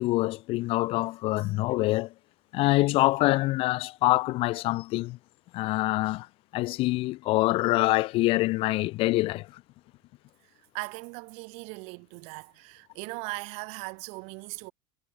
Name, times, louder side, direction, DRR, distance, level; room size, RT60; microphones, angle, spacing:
voice 1, 0.0-2.1 2.5-5.2 5.5-6.3 6.5-9.5, left 19 dB, 50° left, 0.5 m, -25 dB
voice 2, 10.4-14.7, right 31 dB, 65° right, 2.9 m, -39 dB
supercardioid pair, 125°, 12 cm